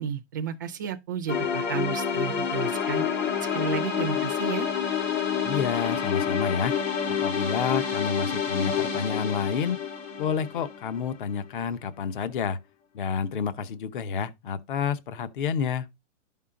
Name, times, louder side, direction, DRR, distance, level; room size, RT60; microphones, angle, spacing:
voice 1, 0.0-3.0 3.5-4.7, right 8 dB, 15° right, 0.5 m, -32 dB
sound 1, 1.3-11.3, left 7 dB, 85° left, 3.7 m, -28 dB
voice 2, 5.4-6.8 7.1-9.8 10.2-12.6 12.9-15.9, left 6 dB, 40° left, 0.8 m, -29 dB
11.5 x 5.6 x 3.7 m
hypercardioid pair, 170°, 38 cm